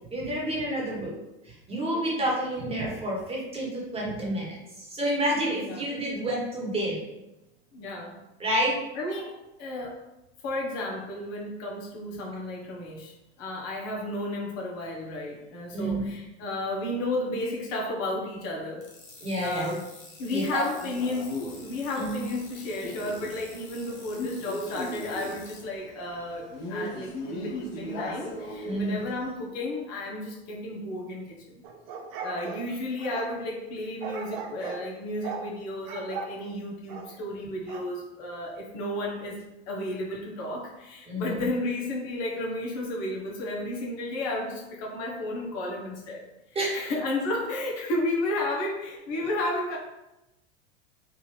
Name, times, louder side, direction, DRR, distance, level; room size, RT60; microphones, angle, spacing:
voice 1, 0.1-1.1 1.4-7.0 8.4-8.8 15.7-16.0 19.2-19.8 20.3-20.6 22.0-22.3 28.6-29.0 41.1-41.5 46.5-46.9, right 1 dB, 15° right, -4 dB, 1.3 m, -29 dB
voice 2, 7.7-8.2 8.9-10.0 10.4-18.8 19.4-19.9 20.2-31.6 32.2-46.2 46.7-49.8, left 1 dB, 50° left, -2 dB, 1.1 m, -33 dB
sound 1, 18.8-25.6, left 3 dB, 90° left, 1.2 m, -49 dB
Male speech man speaking, 20.8-29.3, left 1 dB, 70° left, 1.0 m, -38 dB
sound 2, 31.6-33.3 34.0-34.8 35.2-35.5 35.9-36.3 36.9-37.1 37.7-37.9, right 5 dB, 55° right, 0.7 m, -37 dB
3.5 x 2.6 x 3.2 m, 0.95 s
hypercardioid pair, 95°, 33 cm